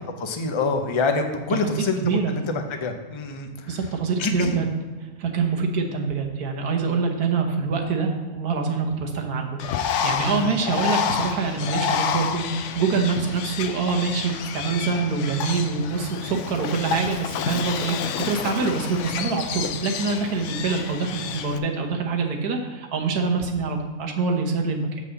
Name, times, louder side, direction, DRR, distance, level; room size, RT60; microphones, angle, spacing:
voice 1, 0.2-2.0 2.3-3.7 4.2-4.7 10.3-10.5, left 3 dB, 35° left, 5 dB, 0.5 m, -26 dB
voice 2, 2.0-2.3 3.7-4.7 5.2-25.0, right 4 dB, 90° right, 2 dB, 1.6 m, -25 dB
Bird, 9.6-21.6, left 7 dB, 65° left, 0.8 m, -29 dB
6.2 x 5.4 x 7.0 m, 1.3 s
omnidirectional pair, 1.6 m